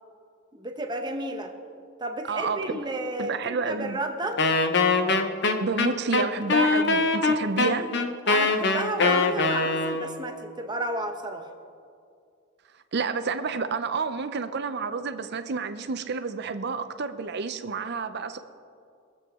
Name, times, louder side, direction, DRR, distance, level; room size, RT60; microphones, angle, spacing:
voice 1, 0.5-1.5 2.0-4.4 8.3-11.5, right 1 dB, 20° right, 4 dB, 1.0 m, -32 dB
voice 2, 2.3-2.9 3.2-4.0 5.6-7.9 12.9-18.4, right 4 dB, 55° right, 10 dB, 0.6 m, -30 dB
Wind instrument woodwind instrument, 4.4-10.2, left 3 dB, 60° left, 0.9 m, -23 dB
23.0 x 7.8 x 3.7 m, 2.4 s
head